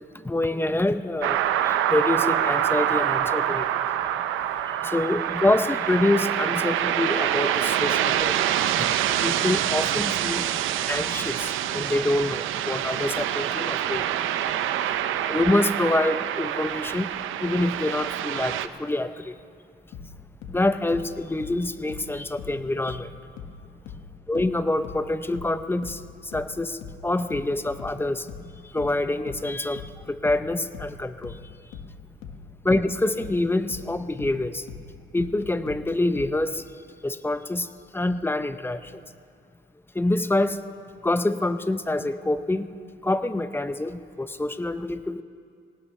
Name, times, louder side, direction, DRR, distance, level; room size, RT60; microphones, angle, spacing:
voice 1, 0.0-3.8 4.7-8.3 9.2-10.6 10.9-14.0 15.3-17.1 17.4-19.3 20.5-23.1 24.3-26.0 26.3-31.4 32.6-34.7 35.1-36.6 37.0-37.7 37.9-39.0 39.9-40.6 41.0-42.7 43.0-45.2, left 2 dB, 10° left, 11 dB, 0.7 m, -26 dB
sound 1, 1.2-18.7, right 11 dB, 85° right, 0.6 m, -26 dB
sound 2, 19.9-23.1 23.4-36.4, left 6 dB, 90° left, 1.6 m, -41 dB
23.0 x 18.5 x 3.2 m, 2.3 s
cardioid pair, 90°, 20 cm